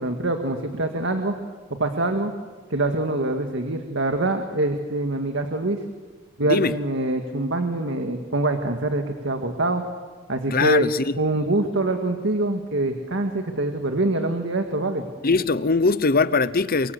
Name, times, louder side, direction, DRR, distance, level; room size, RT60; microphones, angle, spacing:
voice 1, 0.0-1.4 1.8-2.3 2.7-5.8 6.4-9.8 10.3-10.9 11.2-15.0, right 2 dB, 65° right, 2.0 m, -24 dB
voice 2, 10.5-11.1 15.2-16.9, left 4 dB, 45° left, 0.8 m, -21 dB
29.5 x 24.0 x 8.2 m
head